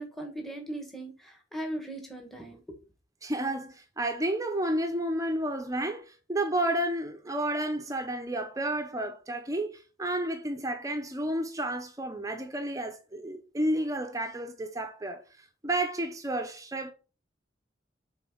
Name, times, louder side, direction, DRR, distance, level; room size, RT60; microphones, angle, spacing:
voice 1, 0.0-2.8, right 1 dB, ahead, 1.2 m, -38 dB
voice 2, 3.2-15.2 15.6-16.9, right 1 dB, 20° right, 0.7 m, -31 dB
6.0 x 3.9 x 4.6 m
head